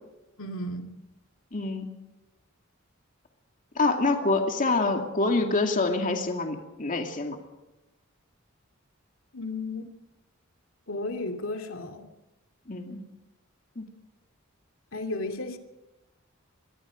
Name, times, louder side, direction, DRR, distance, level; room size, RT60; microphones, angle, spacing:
voice 1, 0.4-0.9 9.3-9.8 10.9-12.1 14.9-15.6, left 2 dB, 80° left, 5 dB, 2.7 m, -33 dB
voice 2, 1.5-1.9 3.8-7.4 12.7-13.0 13.8-13.9, left 3 dB, 40° left, 3 dB, 2.4 m, -26 dB
25.5 x 22.5 x 5.1 m, 1.0 s
head